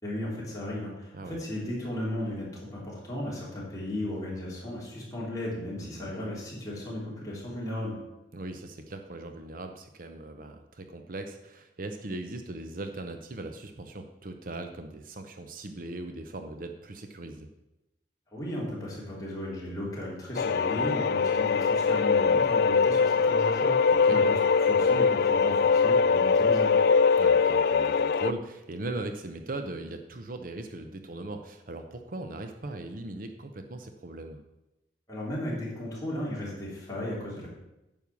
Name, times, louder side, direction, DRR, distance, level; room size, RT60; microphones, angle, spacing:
voice 1, 0.0-8.0 18.3-26.8 35.1-37.5, left 1 dB, 20° left, -5 dB, 3.3 m, -35 dB
voice 2, 5.8-6.1 8.3-17.5 23.9-24.2 27.2-34.4, right 2 dB, 50° right, 6 dB, 0.7 m, -39 dB
sound 1, 20.4-28.3, left 5 dB, 55° left, 0.3 m, -22 dB
9.4 x 5.5 x 7.1 m, 0.96 s
head